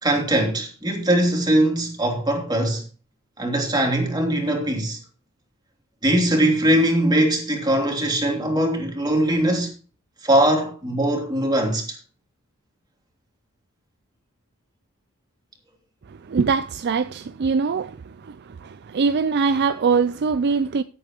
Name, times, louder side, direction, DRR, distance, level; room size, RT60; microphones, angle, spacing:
voice 1, 0.0-2.8 3.4-5.0 6.0-9.7 10.2-12.0, right 1 dB, 20° right, 3.1 m, -21 dB
voice 2, 16.3-18.0 18.2-18.4 18.6-20.8, right 5 dB, 50° right, 0.4 m, -22 dB
16.0 x 8.5 x 2.9 m
head